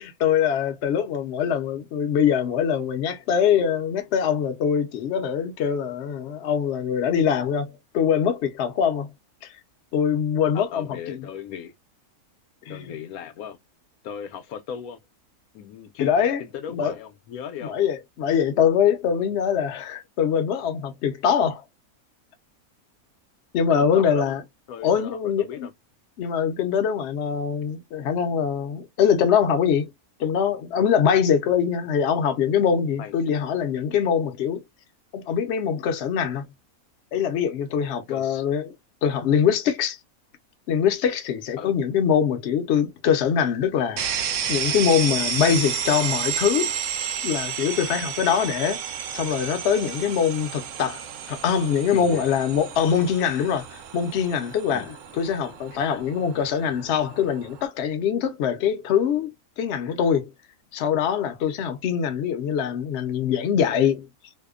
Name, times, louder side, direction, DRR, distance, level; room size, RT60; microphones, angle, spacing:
voice 1, 0.0-9.1 9.9-11.2 12.7-12.8 16.0-16.4 16.7-16.9 17.6-21.6 23.5-24.4 24.8-25.7 26.2-29.9 30.2-34.6 35.1-36.4 37.1-38.7 39.0-40.0 40.7-44.0 44.5-46.7 47.2-48.8 49.1-54.9 55.2-59.3 59.6-60.3 60.7-64.1, left 8 dB, 60° left, 0.8 m, -23 dB
voice 2, 10.5-11.7 12.7-13.6 14.0-15.0 15.5-17.8 23.8-24.4 24.7-25.7 33.0-33.1 38.1-38.4 41.6-41.7 51.9-52.2 54.7-55.0, left 8 dB, 80° left, 1.0 m, -37 dB
sound 1, 44.0-57.7, right 7 dB, 70° right, 0.9 m, -31 dB
2.7 x 2.1 x 2.3 m
omnidirectional pair, 1.5 m